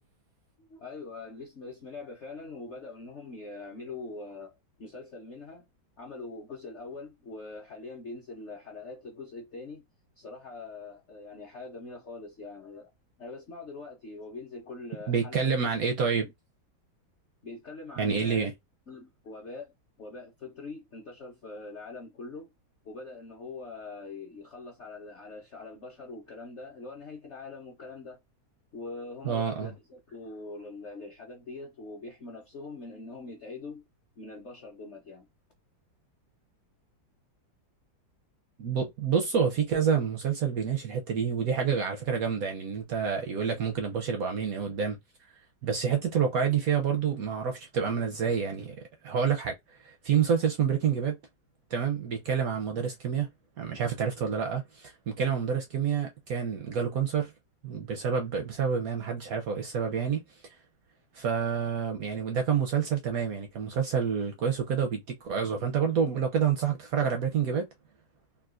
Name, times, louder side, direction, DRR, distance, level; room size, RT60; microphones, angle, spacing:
voice 1, 0.7-4.5 4.8-5.6 6.0-9.8 10.2-12.9 13.2-15.5 16.2-16.3 17.4-18.5 18.9-19.7 20.0-22.5 22.8-28.2 28.7-33.8 34.2-35.3, left 3 dB, 55° left, 0.8 m, -43 dB
voice 2, 15.1-16.3 18.0-18.5 29.2-29.7 38.6-45.0 45.6-48.8 49.0-51.2 51.7-53.3 53.6-57.3 57.6-60.2 61.1-67.6, right 7 dB, 70° right, 0.8 m, -28 dB
3.8 x 2.4 x 2.4 m
omnidirectional pair, 2.1 m